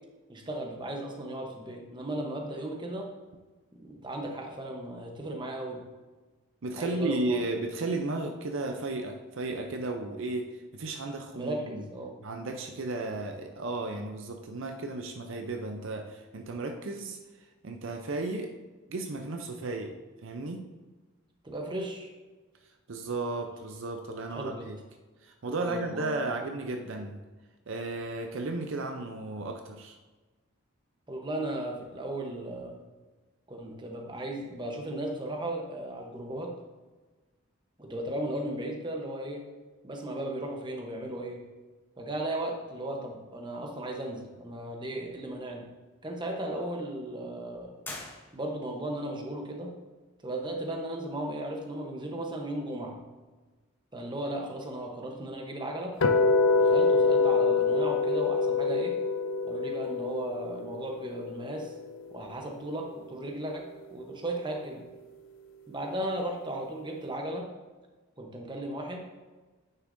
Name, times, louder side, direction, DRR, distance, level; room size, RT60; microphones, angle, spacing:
voice 1, 0.3-3.1 3.7-5.8 6.8-7.4 11.3-12.1 21.4-22.1 24.3-24.7 25.6-26.3 31.1-32.8 33.5-36.5 37.8-39.4 39.8-41.4 42.0-45.7 46.0-47.7 48.3-49.7 50.2-53.0 53.9-56.0 56.5-59.0 59.4-61.7 62.1-64.9 65.7-67.5 68.2-69.0, right 1 dB, 20° right, 1 dB, 0.9 m, -36 dB
voice 2, 6.6-11.8 12.2-17.2 17.6-18.5 18.9-19.9 20.2-20.6 22.9-24.8 25.2-27.2 27.7-30.0, right 2 dB, 60° right, 4 dB, 0.5 m, -34 dB
sound 1, 47.8-48.8, left 2 dB, 10° left, 0.8 m, -43 dB
sound 2, 56.0-62.1, left 4 dB, 65° left, 0.5 m, -25 dB
9.7 x 6.4 x 2.6 m, 1.3 s
head